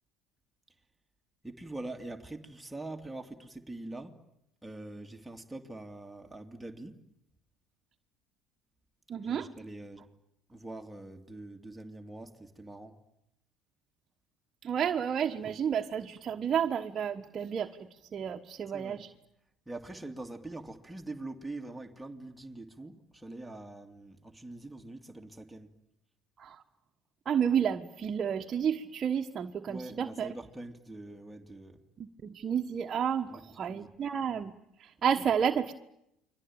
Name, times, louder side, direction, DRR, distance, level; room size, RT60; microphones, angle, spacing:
voice 1, 1.4-4.2 4.6-7.0 9.2-10.1 10.5-13.0 18.7-19.0 19.7-25.7 29.7-31.8 33.3-33.4 33.7-33.9, right 2 dB, 5° right, 2.6 m, -44 dB
voice 2, 9.1-9.5 14.6-19.1 26.4-26.6 27.2-30.3 32.0-34.5 34.8-35.7, right 8 dB, 40° right, 1.3 m, -31 dB
29.5 x 22.5 x 8.9 m
hypercardioid pair, 70°, 0 cm